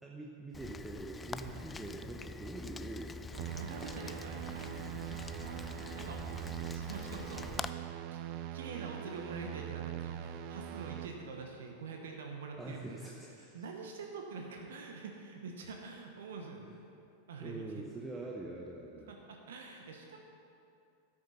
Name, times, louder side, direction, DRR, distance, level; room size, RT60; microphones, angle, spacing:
voice 1, 0.0-3.1 12.6-13.6 16.7-16.8 17.4-19.1, right 2 dB, 10° right, -2 dB, 0.9 m, -44 dB
Rain, 0.5-7.7, left 4 dB, 15° left, 0.3 m, -45 dB
voice 2, 3.3-8.2 8.5-13.1 13.4-16.7 17.3-17.8 19.1-20.2, right 4 dB, 60° right, 2 dB, 1.1 m, -46 dB
sound 1, 3.4-11.1, right 11 dB, 40° right, 0.5 m, -42 dB
13.0 x 6.5 x 5.7 m, 2.6 s
figure-of-eight pair, 90°, 0 cm